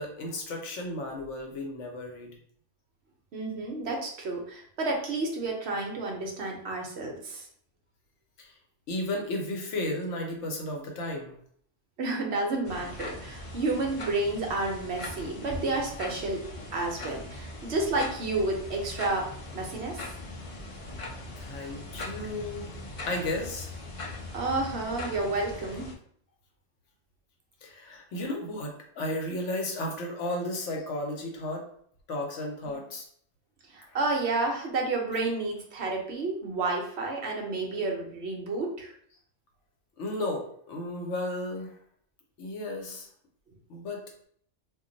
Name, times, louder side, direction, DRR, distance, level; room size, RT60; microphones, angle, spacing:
voice 1, 0.0-2.4 8.4-8.5 8.9-11.4 21.4-22.7 23.1-23.7 27.6-31.7 32.1-33.1 33.9-34.0 40.0-41.8 42.4-43.1 43.7-44.0, left 1 dB, 75° left, 1 dB, 1.0 m, -34 dB
voice 2, 3.3-7.5 12.0-16.4 16.7-20.0 24.3-25.9 32.6-32.8 33.7-38.9, right 2 dB, 65° right, 0 dB, 0.9 m, -30 dB
sound 1, 12.6-25.9, left 2 dB, 50° left, 0.4 m, -40 dB
2.5 x 2.2 x 3.8 m, 0.62 s
omnidirectional pair, 1.3 m